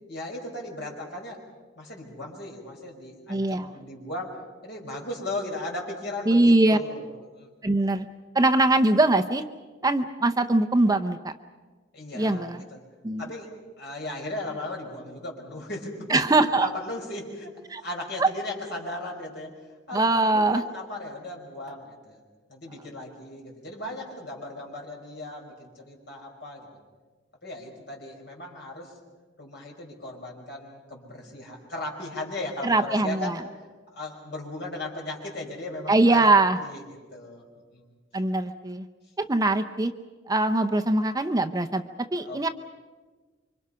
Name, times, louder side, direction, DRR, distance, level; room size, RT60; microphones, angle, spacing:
voice 1, 0.1-1.4 1.8-4.3 4.6-7.5 11.9-12.8 13.2-16.2 16.5-17.5 17.8-19.5 19.9-22.2 22.5-26.7 27.4-28.9 29.4-33.4 33.9-36.2 36.6-37.4 37.7-37.9 42.2-42.5, left 1 dB, 60° left, -1 dB, 5.5 m, -37 dB
voice 2, 3.3-3.7 6.3-6.8 7.6-8.1 8.3-9.4 9.8-11.3 12.1-12.6 13.0-13.3 16.1-16.7 17.7-17.8 18.2-18.3 19.9-20.6 32.6-33.4 35.9-36.6 38.1-38.9 39.2-39.9 40.3-42.5, right 2 dB, 20° right, 7 dB, 0.7 m, -22 dB
27.5 x 25.0 x 5.7 m, 1.4 s
head